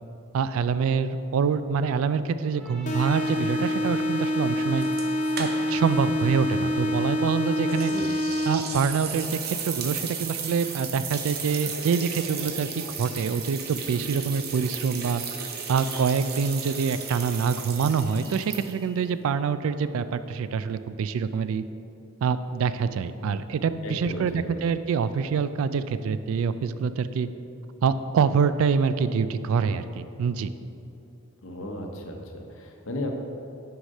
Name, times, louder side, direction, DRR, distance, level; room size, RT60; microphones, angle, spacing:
voice 1, 0.3-4.9 5.4-7.9 8.5-15.2 15.7-21.6 22.2-27.3 27.8-30.5, right 6 dB, 75° right, 13 dB, 0.3 m, -26 dB
Trumpet, 2.6-7.8, right 1 dB, ahead, 1.1 m, -43 dB
sound 1, 2.9-8.9, equal, 35° left, 0.5 m, -27 dB
sound 2, 4.8-5.9 6.2-6.3 7.7-19.0, right 6 dB, 45° right, 0.7 m, -35 dB
voice 2, 7.7-8.1 23.8-24.6 31.4-33.2, left 1 dB, 65° left, 3 dB, 0.8 m, -35 dB
6.4 x 4.8 x 5.3 m, 2.7 s
head